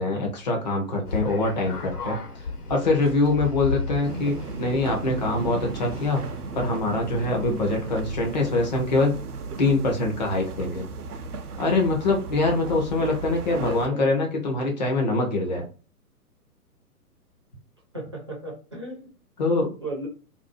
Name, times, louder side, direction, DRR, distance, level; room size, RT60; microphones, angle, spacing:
voice 1, 0.0-6.2 6.5-9.1 9.6-10.8 11.6-15.7 19.4-19.7, left 2 dB, 30° left, 1 dB, 0.5 m, -24 dB
sound 1, 1.0-8.5, left 4 dB, 75° left, 1.1 m, -35 dB
sound 2, 4.0-13.9, right 4 dB, 70° right, 0.6 m, -35 dB
voice 2, 13.5-14.1 17.9-19.1 19.8-20.1, right 1 dB, 20° right, -4 dB, 0.4 m, -35 dB
2.6 x 2.2 x 2.5 m, 0.36 s
figure-of-eight pair, 125°, 47 cm